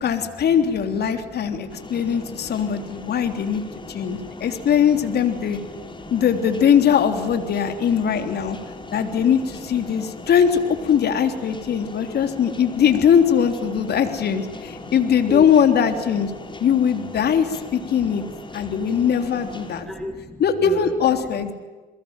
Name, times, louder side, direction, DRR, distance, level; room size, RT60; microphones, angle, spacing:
voice 1, 0.0-3.6 3.9-5.6 6.1-8.6 8.9-16.3 16.6-18.2 18.5-19.9 20.4-21.5, left 8 dB, 55° left, 7 dB, 3.5 m, -20 dB
voice 2, 1.1-3.2 3.5-4.5 5.3-6.1 7.8-7.9 8.2-8.3 8.6-9.3 9.9-10.1 11.5-11.6 12.0-12.1 12.4-12.5 14.8-15.0 15.3-15.5 17.9-18.0 18.3-18.8 19.2-20.9, equal, ahead, 7 dB, 3.5 m, -37 dB
sound 1, 1.7-19.8, left 2 dB, 25° left, 4.8 m, -40 dB
29.0 x 22.5 x 9.2 m, 1.3 s
hypercardioid pair, 60°, 20 cm